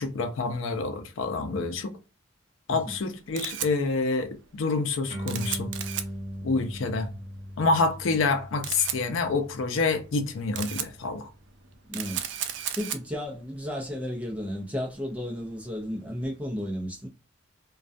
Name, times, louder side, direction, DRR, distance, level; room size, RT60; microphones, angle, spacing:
voice 1, 0.0-2.0 2.7-5.7 6.4-7.1 7.6-11.3, left 3 dB, 85° left, 0.5 m, -27 dB
Camera, 3.0-16.3, right 10 dB, 65° right, 0.3 m, -38 dB
sound 1, 5.1-11.9, equal, 30° right, 1.0 m, -40 dB
voice 2, 11.9-12.4 12.8-17.1, equal, 5° right, 0.5 m, -33 dB
2.3 x 2.1 x 2.5 m
head